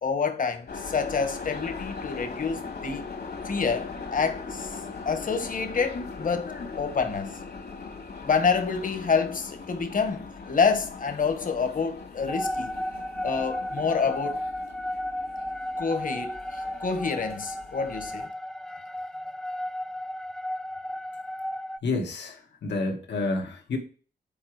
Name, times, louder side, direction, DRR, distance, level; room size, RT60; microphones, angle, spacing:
voice 1, 0.0-3.0 3.4-4.7 5.0-7.3 8.2-12.7 13.2-14.4 15.8-18.3, left 5 dB, 50° left, 1.4 m, -28 dB
sound 1, 0.7-18.3, left 4 dB, 70° left, 2.3 m, -40 dB
sound 2, 12.3-21.8, left 1 dB, 5° left, 0.5 m, -34 dB
voice 2, 21.8-22.4 22.6-23.8, left 3 dB, 85° left, 1.8 m, -29 dB
7.2 x 4.9 x 4.9 m
wide cardioid pair, 110°, 18 cm